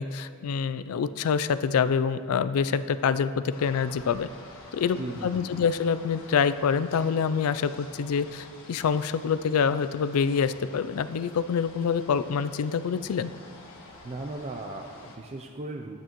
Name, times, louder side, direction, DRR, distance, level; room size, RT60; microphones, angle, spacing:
voice 1, 0.0-4.3 4.7-13.3, left 6 dB, 80° left, 13 dB, 0.4 m, -26 dB
sound 1, 3.5-15.2, left 2 dB, 65° left, 1.5 m, -48 dB
voice 2, 5.0-5.6 14.0-16.0, right 2 dB, 30° right, 3 dB, 0.4 m, -37 dB
12.5 x 8.5 x 3.0 m, 2.2 s
head